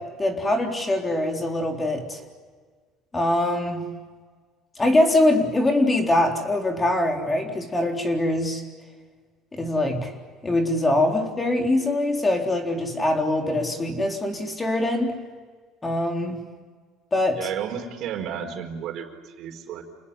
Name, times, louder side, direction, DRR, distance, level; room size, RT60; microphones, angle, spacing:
voice 1, 0.0-2.2 3.1-3.9 4.8-8.6 9.5-10.1 10.4-15.1 15.8-16.5 17.1-17.5, left 1 dB, 15° left, 3 dB, 3.9 m, -23 dB
voice 2, 17.3-19.8, right 8 dB, 60° right, 5 dB, 4.8 m, -32 dB
29.0 x 20.0 x 10.0 m, 1.5 s
cardioid pair, 130°, 0 cm